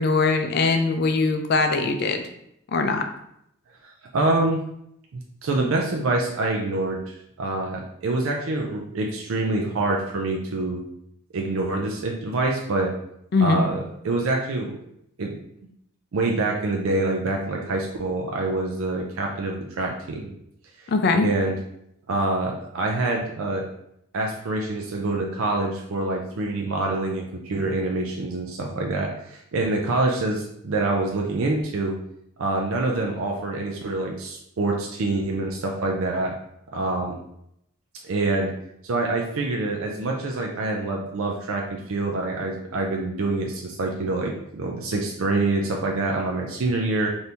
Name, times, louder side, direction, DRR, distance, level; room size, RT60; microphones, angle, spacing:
voice 1, 0.0-2.2 2.7-3.1 13.3-13.6 20.9-21.3, left 3 dB, 50° left, 6 dB, 0.4 m, -21 dB
voice 2, 3.8-4.6 5.1-10.8 11.3-12.9 13.4-13.8 14.0-14.8 15.2-15.4 16.1-20.3 20.8-20.9 21.2-21.6 22.1-23.7 24.1-32.0 32.4-36.4 36.7-37.2 38.0-38.5 38.8-47.1, right 2 dB, 75° right, 0 dB, 0.4 m, -26 dB
3.4 x 2.7 x 2.8 m, 0.76 s
head